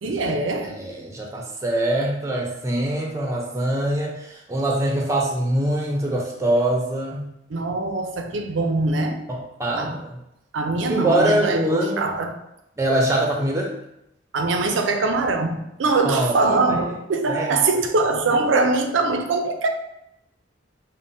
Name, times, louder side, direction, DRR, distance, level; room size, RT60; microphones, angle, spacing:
voice 1, 0.0-0.8 7.5-9.3 9.7-10.0 10.5-11.7 12.0-12.4 14.3-19.7, right 3 dB, 80° right, 0.5 m, -22 dB
voice 2, 0.6-7.3 9.3-10.2 10.9-12.0 12.8-13.7 16.0-16.6 17.3-17.6, right 1 dB, 15° right, 0.5 m, -23 dB
5.3 x 2.1 x 2.6 m
head